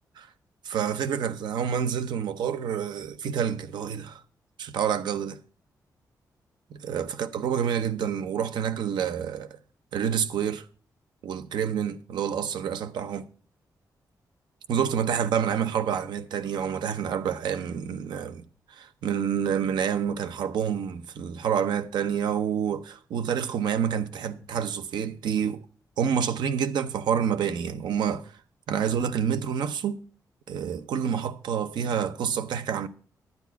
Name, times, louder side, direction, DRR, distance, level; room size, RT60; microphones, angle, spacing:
voice 1, 0.6-4.2 4.6-5.4 6.7-9.5 9.9-10.7 11.2-13.3 14.7-18.4 18.7-25.6 26.0-28.3 28.7-30.0 30.5-32.9, right 8 dB, 90° right, 0.8 m, -28 dB
10.5 x 9.1 x 4.6 m
cardioid pair, 75°, 7 cm